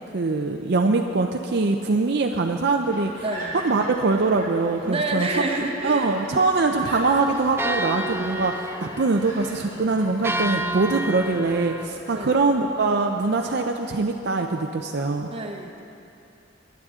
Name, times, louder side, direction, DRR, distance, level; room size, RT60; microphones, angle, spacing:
voice 1, 0.1-3.2 3.6-5.3 5.8-15.3, right 3 dB, 60° right, 3 dB, 0.5 m, -23 dB
sound 1, 2.8-13.6, equal, 25° left, 3.8 m, -42 dB
voice 2, 3.2-3.5 4.8-6.4 12.1-12.5 15.2-15.8, right 2 dB, 30° right, 1 dB, 1.2 m, -29 dB
sound 2, 6.7-11.9, right 1 dB, 10° right, 0.4 m, -31 dB
22.5 x 10.5 x 3.7 m, 2.8 s
head